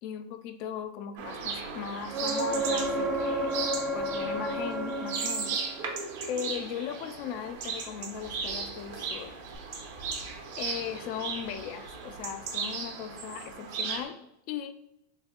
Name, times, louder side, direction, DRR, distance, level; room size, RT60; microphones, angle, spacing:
voice 1, 0.0-3.6 3.9-5.7 6.3-9.3 10.6-14.2 14.5-14.7, left 8 dB, 50° left, 10 dB, 0.3 m, -38 dB
sound 1, 1.2-14.0, right 5 dB, 70° right, 0.8 m, -36 dB
sound 2, 2.1-5.9 9.5-9.6, right 1 dB, 25° right, 0.4 m, -31 dB
3.8 x 2.7 x 2.4 m, 0.81 s
supercardioid pair, 140°, 0 cm